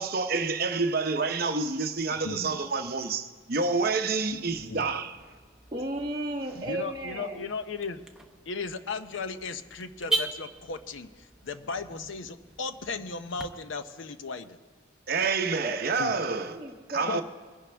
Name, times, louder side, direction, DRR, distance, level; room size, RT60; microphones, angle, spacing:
voice 1, 0.0-5.2 15.1-16.6 16.9-17.2, right 4 dB, 50° right, 0.8 m, -28 dB
voice 2, 2.2-2.6 4.3-4.4 4.7-4.8 6.6-8.0 8.5-14.6 16.0-16.2 17.1-17.2, left 4 dB, 70° left, 0.7 m, -36 dB
Car / Alarm, 4.3-13.5, right 2 dB, 5° right, 0.7 m, -39 dB
voice 3, 5.7-7.4 15.5-15.8 16.4-17.1, right 1 dB, 20° right, 1.2 m, -34 dB
21.5 x 11.0 x 3.4 m
head